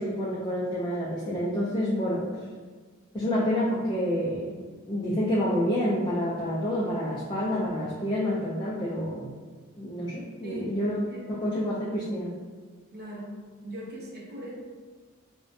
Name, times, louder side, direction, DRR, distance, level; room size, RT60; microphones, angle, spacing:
voice 1, 0.0-2.3 3.1-9.3 9.8-11.0 11.3-12.4, equal, 20° left, -6 dB, 0.3 m, -28 dB
voice 2, 10.4-11.4 12.9-13.4 13.6-14.5, equal, 50° right, -4 dB, 0.6 m, -39 dB
2.4 x 2.1 x 2.6 m, 1.4 s
head